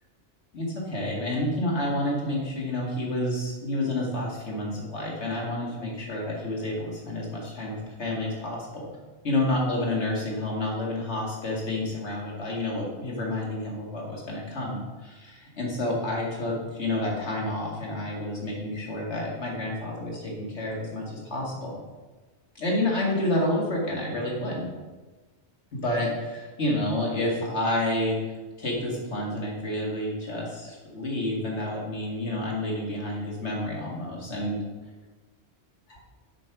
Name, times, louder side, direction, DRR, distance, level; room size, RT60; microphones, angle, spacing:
voice 1, 0.5-8.9 9.2-21.8 22.6-24.7 25.7-28.2 28.6-34.6 35.9-36.0, left 1 dB, 85° left, -2 dB, 2.3 m, -29 dB
7.6 x 5.0 x 6.0 m, 1.2 s
omnidirectional pair, 1.1 m